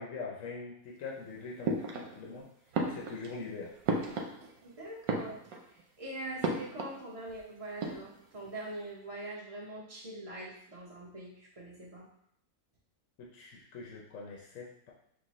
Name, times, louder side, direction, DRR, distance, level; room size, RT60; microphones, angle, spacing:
voice 1, 0.0-2.5 2.8-3.7 13.2-14.9, left 4 dB, 70° left, -2 dB, 1.0 m, -43 dB
sound 1, 1.6-2.4 2.7-4.7 5.0-5.8 6.4-7.0 7.3-7.4 7.7-8.4, right 3 dB, 90° right, 1.1 m, -34 dB
voice 2, 4.6-5.5 6.0-12.1, right 2 dB, 30° right, -5 dB, 1.0 m, -43 dB
6.3 x 2.2 x 3.0 m, 0.70 s
omnidirectional pair, 1.4 m